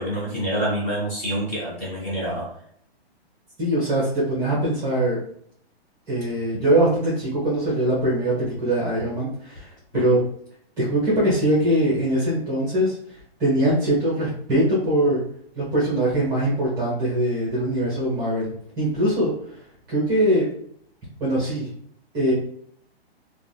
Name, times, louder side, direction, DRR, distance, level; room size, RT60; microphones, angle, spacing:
voice 1, 0.0-2.5 9.9-10.1, right 1 dB, 20° left, -5 dB, 0.9 m, -27 dB
voice 2, 3.6-5.2 6.1-10.2 10.8-13.0 13.4-15.2 15.5-18.5 18.8-19.3 19.9-20.4 21.2-21.7 22.1-22.3, right 1 dB, 10° right, -6 dB, 0.7 m, -22 dB
3.2 x 2.2 x 2.6 m, 0.65 s
hypercardioid pair, 160°, 32 cm